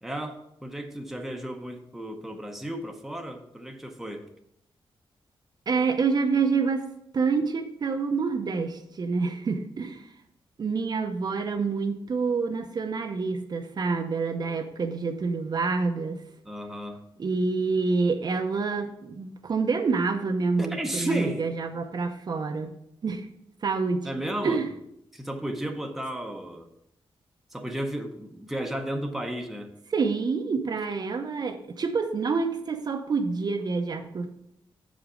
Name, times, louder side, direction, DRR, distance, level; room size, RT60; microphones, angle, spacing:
voice 1, 0.0-4.3 16.4-17.0 20.6-21.5 24.0-24.6 25.1-26.7 27.5-29.7, right 1 dB, 5° right, 3 dB, 0.8 m, -33 dB
voice 2, 5.7-6.9 7.1-10.0 10.6-16.2 17.2-22.7 23.0-23.3 23.6-24.1 24.4-24.7 29.9-34.4, right 4 dB, 45° right, 5 dB, 0.7 m, -27 dB
7.2 x 5.1 x 5.0 m, 0.78 s
wide cardioid pair, 125°, 9 cm